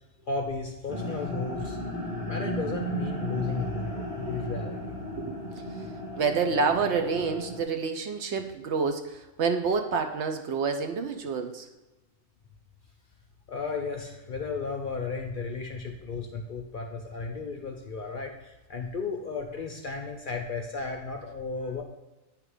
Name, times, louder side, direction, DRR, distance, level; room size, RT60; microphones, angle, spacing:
voice 1, 0.3-1.8 2.3-4.8 13.5-21.8, left 4 dB, 55° left, 3 dB, 0.6 m, -34 dB
sound 1, 0.9-7.6, equal, 50° right, 1.5 m, -34 dB
voice 2, 6.2-11.7, right 5 dB, 65° right, 6 dB, 0.8 m, -28 dB
8.8 x 3.3 x 4.8 m, 1.1 s
omnidirectional pair, 1.4 m